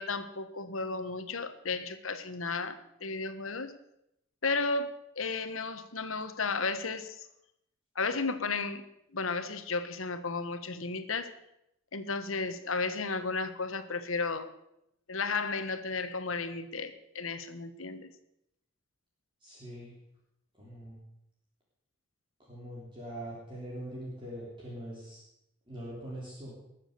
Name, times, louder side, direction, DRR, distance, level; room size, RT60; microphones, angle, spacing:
voice 1, 0.0-3.8 4.4-7.3 7.9-8.8 9.1-11.3 11.9-14.5 15.1-18.1, left 4 dB, 85° left, 10 dB, 1.3 m, -34 dB
voice 2, 19.4-20.0 20.6-21.0 22.5-25.2 25.7-26.5, right 1 dB, 25° right, -5 dB, 3.5 m, -42 dB
20.5 x 7.4 x 6.7 m, 0.81 s
head